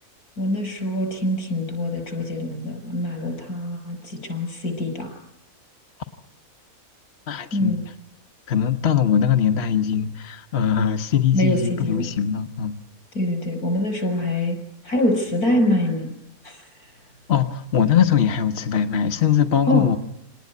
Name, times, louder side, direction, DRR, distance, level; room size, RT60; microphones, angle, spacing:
voice 1, 0.4-5.1 7.5-7.8 11.3-12.1 13.1-14.6 14.8-16.1 16.4-16.6 19.7-19.9, left 1 dB, 85° left, 6 dB, 6.5 m, -24 dB
voice 2, 7.3-7.8 8.5-12.7 17.3-20.0, left 8 dB, 50° left, 6 dB, 1.3 m, -21 dB
26.5 x 19.0 x 9.5 m, 0.79 s
omnidirectional pair, 1.5 m